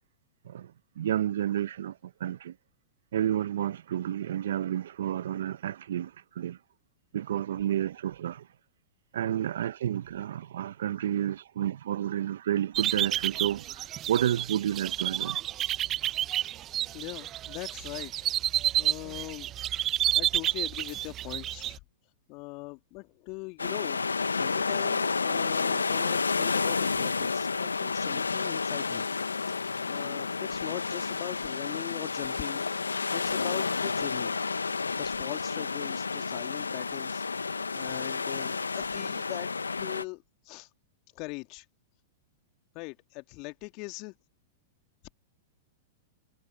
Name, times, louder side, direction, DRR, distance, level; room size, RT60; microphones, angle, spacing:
voice 1, 0.4-2.5 3.1-6.6 7.1-8.5 9.1-15.4, right 11 dB, 65° right, 0.8 m, -31 dB
sound 1, 12.7-21.8, right 12 dB, 30° right, 1.1 m, -30 dB
voice 2, 16.9-18.1 18.8-19.5 20.2-21.8 22.3-24.0 24.3-29.1 29.8-32.6 33.1-34.3 35.0-37.2 37.7-39.5 39.8-40.7 41.2-41.6 42.7-44.1, left 27 dB, 45° left, 2.2 m, -40 dB
sound 2, 23.6-40.0, left 4 dB, 85° left, 1.3 m, -30 dB
figure-of-eight pair, 100°, 0 cm